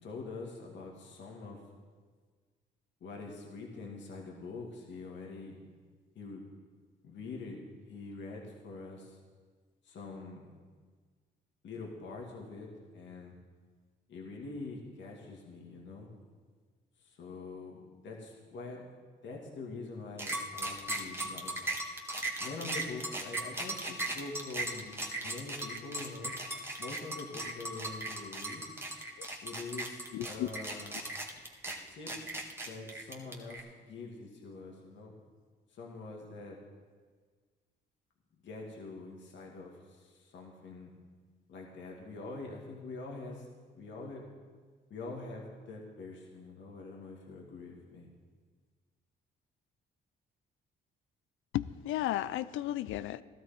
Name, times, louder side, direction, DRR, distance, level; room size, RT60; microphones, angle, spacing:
voice 1, 0.0-1.6 3.0-5.6 6.1-6.4 7.0-9.2 9.8-10.5 11.6-13.4 14.1-16.1 17.0-18.8 19.2-21.5 22.4-26.3 26.8-28.7 29.4-31.0 31.9-32.3 32.6-35.1 35.7-36.6 38.4-40.9 41.5-43.5 43.7-44.2 44.9-48.1, left 3 dB, 65° left, -1 dB, 2.4 m, -44 dB
sound 1, 20.2-33.6, right 2 dB, 10° right, 2.0 m, -37 dB
voice 2, 30.1-30.5 51.5-53.2, left 13 dB, 85° left, 17 dB, 0.5 m, -34 dB
15.5 x 13.0 x 4.5 m, 1.5 s
cardioid pair, 90°, 20 cm